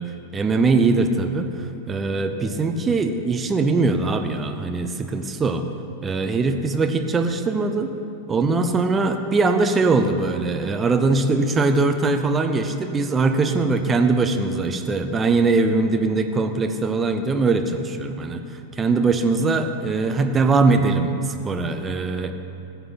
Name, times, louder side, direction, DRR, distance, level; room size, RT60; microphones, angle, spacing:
voice 1, 0.3-5.6 6.0-7.9 8.3-18.4 18.8-22.3, right 3 dB, 20° right, 7 dB, 0.8 m, -21 dB
15.5 x 8.0 x 4.0 m, 2.9 s
figure-of-eight pair, 90°, 0 cm